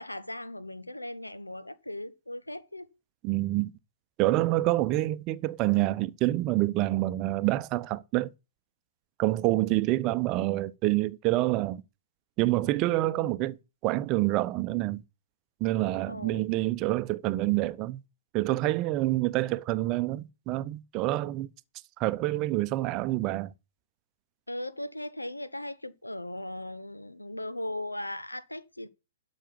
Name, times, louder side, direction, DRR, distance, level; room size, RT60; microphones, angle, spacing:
voice 1, 0.0-2.9 13.0-13.3 16.1-16.5 24.5-28.9, left 1 dB, 85° left, 1.1 m, -38 dB
voice 2, 3.2-3.7 4.2-8.3 9.2-11.8 12.4-13.6 13.8-15.0 15.6-18.0 18.3-21.5 22.0-23.5, right 17 dB, 30° right, 0.7 m, -27 dB
12.0 x 6.2 x 6.8 m
figure-of-eight pair, 115°, 0 cm